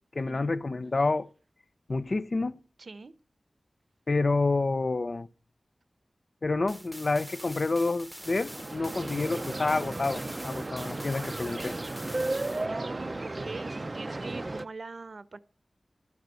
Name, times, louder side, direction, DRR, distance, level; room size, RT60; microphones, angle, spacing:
voice 1, 0.1-1.3 1.9-2.6 4.1-5.3 6.4-11.8, left 3 dB, 50° left, 0.9 m, -28 dB
voice 2, 2.8-3.1 9.0-9.1 12.5-15.4, right 3 dB, 60° right, 1.1 m, -43 dB
sound 1, 6.7-12.7, equal, ahead, 1.0 m, -45 dB
sound 2, 8.2-14.6, right 2 dB, 35° right, 0.7 m, -35 dB
12.0 x 11.0 x 6.5 m
wide cardioid pair, 90°, 0 cm